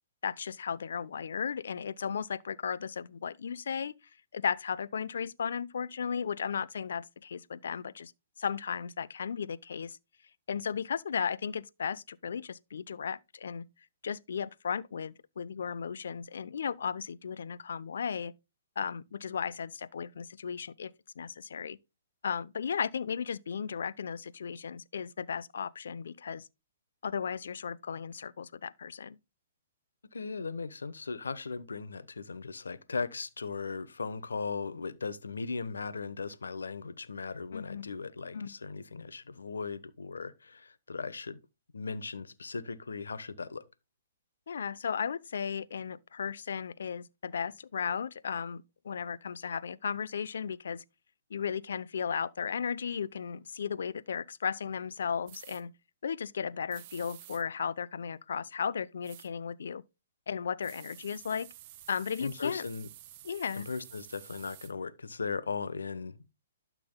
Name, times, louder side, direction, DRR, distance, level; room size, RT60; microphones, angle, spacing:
voice 1, 0.2-3.9 4.3-8.1 8.4-10.0 10.5-13.6 14.0-18.3 18.8-20.9 21.2-21.8 22.2-26.5 27.0-29.2 37.5-37.9 38.3-38.5 44.5-50.8 51.3-55.7 56.0-59.8 60.3-61.5 61.9-62.6 63.2-63.7, left 7 dB, 70° left, 0.7 m, -35 dB
voice 2, 30.1-41.4 41.7-43.6 62.2-62.9 63.5-66.3, left 4 dB, 90° left, 1.0 m, -38 dB
sound 1, 55.3-55.6 56.7-57.4 59.0-59.3 60.6-64.7, right 13 dB, 40° right, 1.1 m, -51 dB
12.0 x 6.1 x 2.2 m
hypercardioid pair, 140°, 0 cm